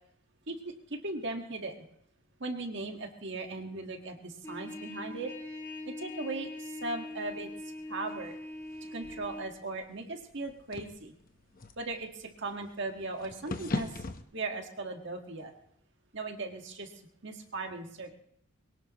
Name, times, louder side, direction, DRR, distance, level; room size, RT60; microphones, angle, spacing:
voice 1, 0.5-1.8 2.4-5.3 5.8-7.5 7.9-8.4 8.8-11.1 11.8-13.9 14.3-15.5 16.1-16.9 17.2-18.1, right 3 dB, 55° right, 3 dB, 1.7 m, -38 dB
Trumpet, 4.4-9.5, left 2 dB, 15° left, 2.6 m, -42 dB
sound 1, 7.1-14.2, left 2 dB, 40° left, 1.0 m, -42 dB
22.5 x 18.0 x 3.0 m, 0.69 s
head